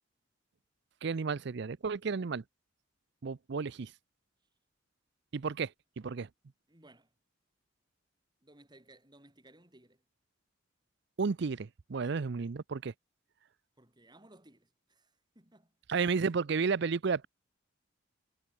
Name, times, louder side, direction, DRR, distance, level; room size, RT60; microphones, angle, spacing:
voice 1, 1.0-2.4 3.2-3.9 5.3-6.3 11.2-12.9 15.9-17.3, right 5 dB, 60° right, 0.5 m, -32 dB
voice 2, 6.7-7.1 8.4-10.0 12.0-12.3 13.8-15.7, right 1 dB, 20° right, 4.0 m, -60 dB
head